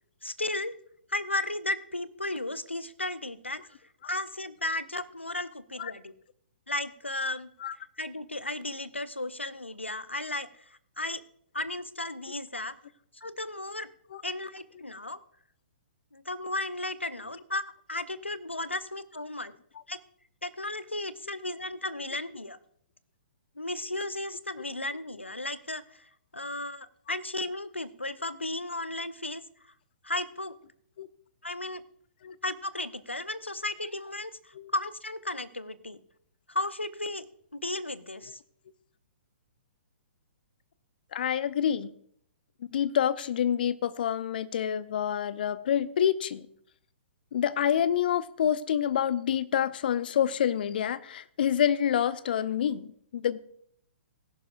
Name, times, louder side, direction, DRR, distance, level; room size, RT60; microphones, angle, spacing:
voice 1, 0.2-0.7 1.1-3.6 4.1-6.1 6.7-7.5 8.0-10.5 11.0-11.2 11.5-12.7 13.1-13.9 14.2-15.2 16.1-17.6 17.9-19.5 19.9-20.0 20.4-22.6 23.6-29.4 30.0-30.5 31.4-31.8 32.4-36.0 36.5-37.3 37.6-38.4, left 2 dB, 90° left, 15 dB, 0.7 m, -34 dB
voice 2, 41.1-41.9 42.7-46.5 47.3-53.4, left 9 dB, 55° left, 16 dB, 0.7 m, -27 dB
18.5 x 11.0 x 2.5 m, 0.65 s
figure-of-eight pair, 120°, 6 cm